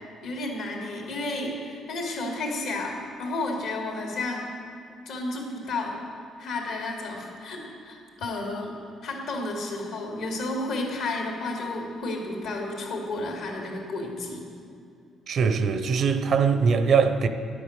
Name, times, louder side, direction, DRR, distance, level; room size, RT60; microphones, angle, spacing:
voice 1, 0.2-4.5 5.1-6.0 6.4-14.5, left 2 dB, 80° left, 2.4 m, -32 dB
voice 2, 15.3-17.3, right 5 dB, 60° right, 0.7 m, -22 dB
11.0 x 8.4 x 6.6 m
cardioid pair, 85°, 0 cm